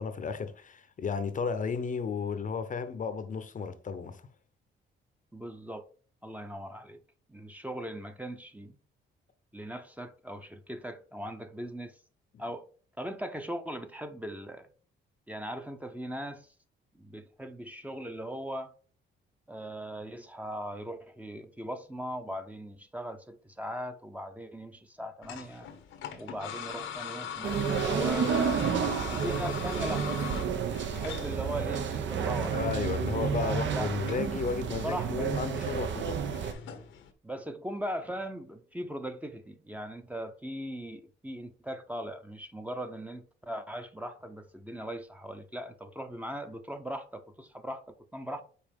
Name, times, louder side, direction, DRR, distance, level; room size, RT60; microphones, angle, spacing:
voice 1, 0.0-4.2 32.5-36.2, left 5 dB, 40° left, 0.8 m, -33 dB
voice 2, 5.3-5.9 6.2-7.0 7.3-8.8 9.5-12.0 12.4-12.6 13.0-14.7 15.3-16.5 17.0-18.7 19.5-25.7 26.2-28.5 29.1-30.1 30.7-32.6 33.4-33.9 34.8-35.3 37.2-48.4, equal, 5° right, 0.8 m, -39 dB
sound 1, 25.2-37.1, left 8 dB, 85° left, 1.1 m, -42 dB
sound 2, 27.4-36.5, right 7 dB, 70° right, 1.0 m, -30 dB
5.6 x 4.2 x 5.3 m
cardioid pair, 90°, 20 cm